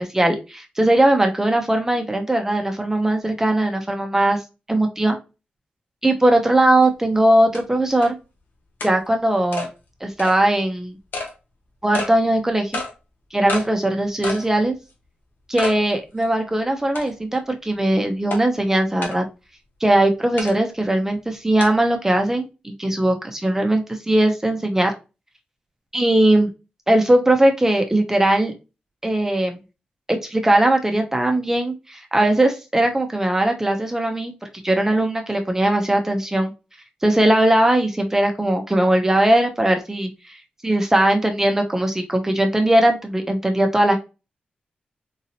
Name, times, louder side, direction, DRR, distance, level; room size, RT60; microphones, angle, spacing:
voice 1, 0.0-4.4 4.7-5.2 6.0-8.2 8.8-9.7 10.0-11.0 11.8-12.8 13.3-14.8 15.5-19.2 19.8-24.9 25.9-26.5 26.9-28.5 29.0-29.6 30.1-34.3 34.6-36.5 37.0-40.1 40.6-44.0, right 1 dB, 15° right, 4 dB, 0.7 m, -19 dB
sound 1, 6.8-6.9 7.5-7.6 8.0-8.1 8.8-8.9 9.5-9.7 10.2-10.4 11.1-11.3 11.9-12.1 12.7-12.9 13.5-13.7 14.2-14.5 14.9-15.0 15.6-15.8 16.2-16.3 17.0-17.3 18.3-18.4 19.0-19.2 20.4-20.5 21.6-21.7, left 3 dB, 80° left, 1.1 m, -29 dB
3.9 x 2.8 x 2.7 m, 0.29 s
cardioid pair, 85°, 3 cm